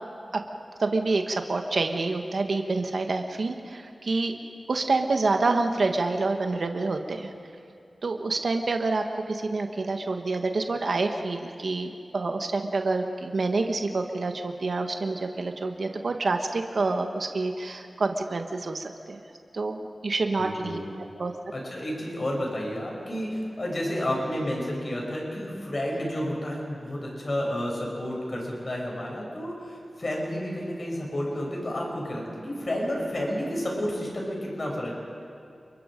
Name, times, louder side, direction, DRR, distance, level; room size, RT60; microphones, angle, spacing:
voice 1, 0.8-4.4 4.7-7.3 8.0-19.2 19.5-20.8 21.2-21.3, right 3 dB, 70° right, 5 dB, 1.4 m, -27 dB
voice 2, 20.4-20.9 21.5-35.0, equal, 55° left, -2 dB, 7.5 m, -31 dB
29.0 x 23.5 x 5.2 m, 2.5 s
cardioid pair, 45°, 0 cm